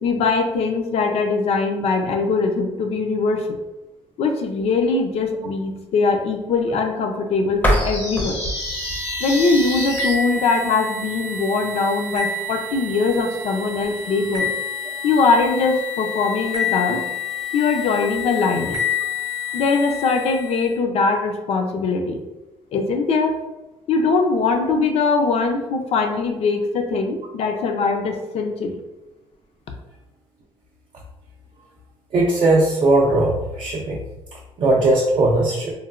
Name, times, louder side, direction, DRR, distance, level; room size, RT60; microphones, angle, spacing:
voice 1, 0.0-3.5 4.2-8.4 9.2-14.5 15.0-17.0 17.5-18.8 19.5-22.2 22.7-23.4 23.9-28.8, left 4 dB, 70° left, 4 dB, 0.5 m, -21 dB
sound 1, 7.5-10.4, equal, 15° left, 0.5 m, -26 dB
sound 2, 7.7-10.1, left 1 dB, 90° left, 1.0 m, -29 dB
sound 3, 8.6-20.7, left 5 dB, 90° right, 0.7 m, -29 dB
voice 2, 32.1-34.0 34.6-35.7, right 2 dB, 45° right, -2 dB, 0.4 m, -18 dB
3.1 x 2.1 x 2.4 m, 1.0 s
cardioid pair, 115°, 11 cm